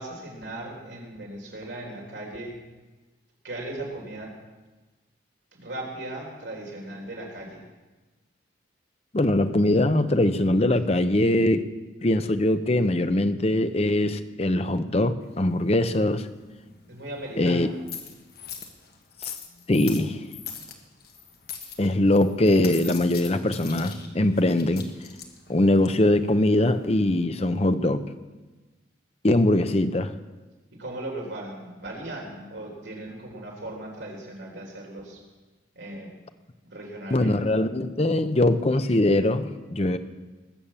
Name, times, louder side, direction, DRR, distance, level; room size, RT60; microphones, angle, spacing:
voice 1, 0.0-2.5 3.4-4.3 5.5-7.6 16.9-17.7 30.8-35.2 35.7-36.1 36.6-37.4, right 1 dB, 70° right, -1 dB, 4.1 m, -37 dB
voice 2, 9.1-11.7 12.0-16.3 17.4-17.7 19.2-19.3 19.7-20.2 21.8-24.8 25.5-28.0 29.2-30.1 37.1-40.0, left 1 dB, 30° left, 10 dB, 0.7 m, -22 dB
sound 1, 15.2-27.2, left 7 dB, 55° left, 1.6 m, -43 dB
20.0 x 7.2 x 7.2 m, 1.2 s
head